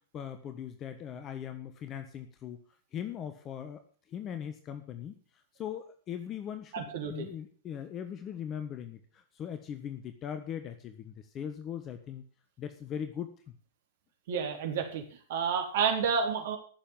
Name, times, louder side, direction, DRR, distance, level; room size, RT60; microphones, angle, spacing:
voice 1, 0.1-2.6 2.9-3.8 4.1-5.2 5.6-12.2 12.6-13.3, left 9 dB, 30° left, 9 dB, 1.4 m, -40 dB
voice 2, 6.7-7.3 14.3-15.0 15.3-16.6, right 6 dB, 60° right, 4 dB, 4.0 m, -30 dB
14.5 x 7.1 x 7.3 m, 0.43 s
figure-of-eight pair, 100°, 0 cm